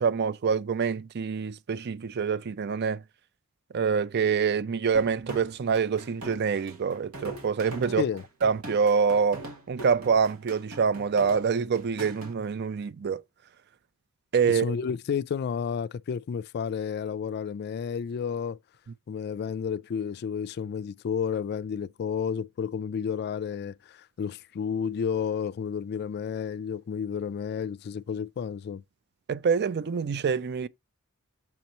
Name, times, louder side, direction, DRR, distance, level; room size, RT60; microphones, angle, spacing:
voice 1, 0.0-3.0 3.7-8.0 8.4-13.2 14.3-14.8 29.3-30.7, right 6 dB, 50° right, 0.4 m, -26 dB
sound 1, 4.9-12.3, right 2 dB, 70° right, 1.7 m, -42 dB
voice 2, 14.5-18.6 19.1-28.8, left 7 dB, 45° left, 0.3 m, -31 dB
7.4 x 2.9 x 5.3 m
head